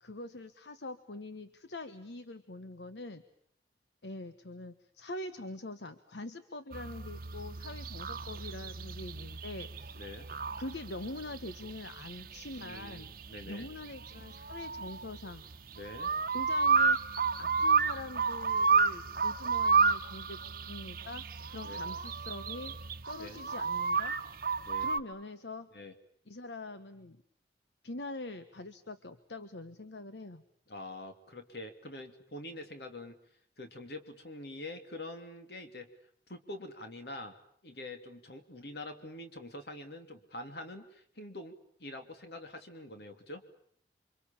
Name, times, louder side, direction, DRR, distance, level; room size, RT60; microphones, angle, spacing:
voice 1, 0.0-3.2 4.0-10.0 10.6-13.1 13.4-15.4 16.3-17.0 17.4-22.8 23.1-24.2 24.8-25.7 26.3-27.2 27.8-30.4, left 2 dB, 80° left, 11 dB, 1.2 m, -44 dB
sound 1, 6.7-25.0, right 5 dB, 50° right, 1.0 m, -31 dB
voice 2, 9.9-10.3 12.6-13.7 15.7-16.1 21.6-21.9 23.2-23.4 24.6-24.9 25.7-25.9 30.7-33.2 33.6-35.9 36.3-37.3 37.6-43.4, left 1 dB, 65° left, 7 dB, 3.0 m, -45 dB
29.0 x 25.0 x 7.2 m, 0.65 s
head